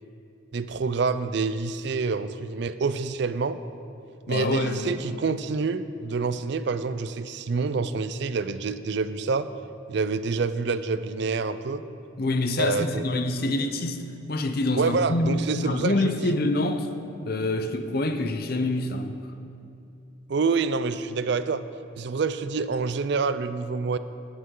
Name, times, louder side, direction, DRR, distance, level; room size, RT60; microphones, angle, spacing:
voice 1, 0.5-3.6 4.3-9.5 9.9-11.8 12.6-13.0 14.8-16.1 20.3-21.6 22.0-24.0, right 4 dB, 55° right, 12 dB, 0.4 m, -27 dB
voice 2, 4.3-5.0 12.2-14.0 14.3-16.9 17.2-19.2, left 2 dB, 45° left, 7 dB, 0.6 m, -26 dB
18.0 x 8.1 x 3.8 m, 2.6 s
head